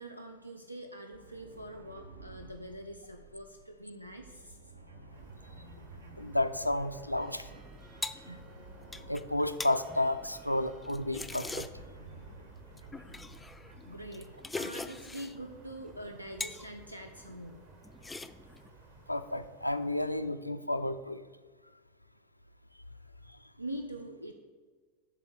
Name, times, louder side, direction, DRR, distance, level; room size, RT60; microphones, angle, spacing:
voice 1, 0.0-4.6 13.8-17.6 23.6-24.3, right 1 dB, 90° right, 5 dB, 0.5 m, -44 dB
sound 1, 1.1-14.2, right 3 dB, 70° right, 0.9 m, -52 dB
sound 2, 5.1-20.6, right 3 dB, 40° right, 1.1 m, -56 dB
voice 2, 6.2-7.5 8.3-8.4 9.1-11.7 19.1-21.2, left 1 dB, 90° left, 10 dB, 0.3 m, -31 dB
sound 3, 7.5-12.0 12.8-15.4 15.8-16.7 17.0-17.5 17.8-18.7, left 3 dB, 10° left, 0.3 m, -42 dB
8.5 x 3.6 x 6.6 m, 1.5 s
figure-of-eight pair, 90°, 0 cm